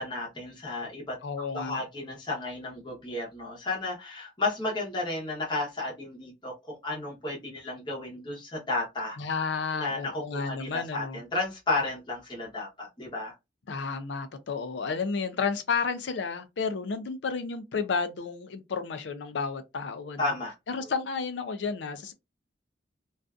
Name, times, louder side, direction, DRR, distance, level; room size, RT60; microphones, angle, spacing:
voice 1, 0.0-9.2 9.7-13.3 20.2-20.5, left 2 dB, 25° left, 0.8 m, -33 dB
voice 2, 1.2-1.8 9.2-11.2 13.7-20.3 20.7-22.1, left 5 dB, 75° left, 0.4 m, -32 dB
2.5 x 2.3 x 2.3 m
head